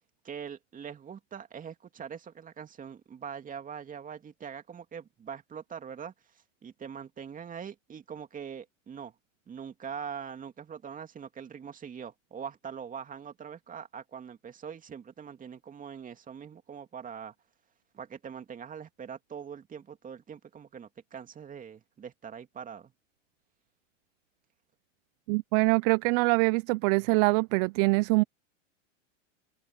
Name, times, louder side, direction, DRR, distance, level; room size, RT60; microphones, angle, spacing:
voice 1, 0.2-6.1 6.6-9.1 9.5-17.3 17.9-22.9, right 7 dB, 20° right, 2.6 m, -42 dB
voice 2, 25.3-28.2, right 28 dB, 45° right, 0.7 m, -24 dB
open air
hypercardioid pair, 110°, 38 cm